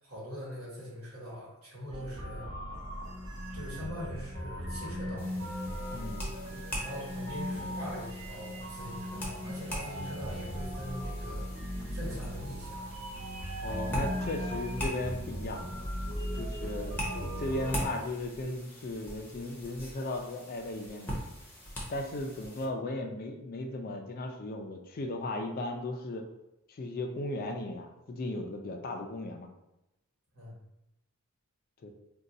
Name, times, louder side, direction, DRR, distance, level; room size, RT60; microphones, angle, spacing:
voice 1, 0.0-2.5 3.5-5.4 6.8-11.5 11.9-12.8 30.3-30.6, equal, 70° right, -6 dB, 1.4 m, -42 dB
sound 1, 1.9-17.9, equal, 50° right, 1.2 m, -38 dB
sound 2, 5.2-22.7, equal, 10° left, 0.7 m, -42 dB
voice 2, 5.9-6.3 13.6-15.7 16.4-21.1 21.9-26.2 26.7-29.5 31.8-31.9, left 2 dB, 40° left, 3 dB, 0.4 m, -36 dB
2.6 x 2.2 x 4.0 m, 0.90 s
head